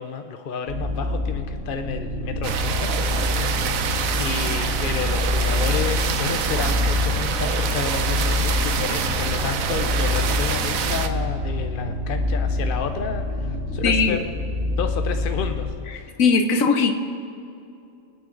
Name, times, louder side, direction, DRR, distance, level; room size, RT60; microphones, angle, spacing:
voice 1, 0.0-2.9 4.2-14.2 14.8-16.1, left 6 dB, 55° left, 6 dB, 0.7 m, -31 dB
sound 1, 0.7-15.7, left 2 dB, 70° right, 2.7 m, -26 dB
sound 2, 2.4-11.1, right 7 dB, 90° right, 1.2 m, -26 dB
voice 2, 13.8-14.2 16.2-16.9, left 4 dB, 80° left, 5 dB, 1.4 m, -18 dB
24.5 x 8.8 x 3.9 m, 2.6 s
omnidirectional pair, 1.4 m